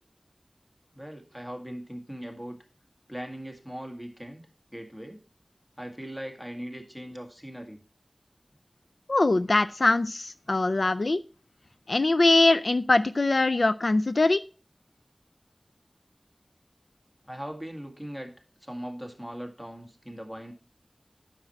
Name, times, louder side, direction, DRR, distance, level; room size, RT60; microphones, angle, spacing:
voice 1, 0.9-2.6 3.1-4.4 4.7-5.2 5.8-7.8 17.2-18.3 18.6-20.5, equal, 5° left, 3 dB, 1.9 m, -39 dB
voice 2, 9.1-11.2 11.9-14.4, left 2 dB, 75° left, 12 dB, 0.3 m, -22 dB
9.6 x 6.0 x 4.3 m, 0.37 s
wide cardioid pair, 50°, 0 cm